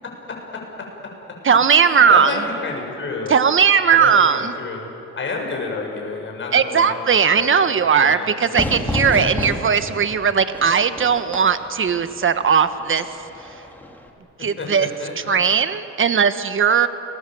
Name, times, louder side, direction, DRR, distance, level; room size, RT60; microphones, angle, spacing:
voice 1, 0.0-0.6 1.8-3.3 3.9-4.9 5.2-7.1 7.3-7.7 8.0-8.3 9.1-9.3 14.6-15.4, left 3 dB, 40° left, 0 dB, 7.5 m, -30 dB
voice 2, 1.4-2.3 3.3-4.5 6.5-13.1 14.4-14.9 15.3-16.9, right 7 dB, 40° right, 11 dB, 1.4 m, -17 dB
Fire / Fireworks, 8.5-14.1, left 1 dB, 5° left, 3.0 m, -30 dB
30.0 x 21.5 x 7.9 m, 3.0 s
cardioid pair, 90°, 30 cm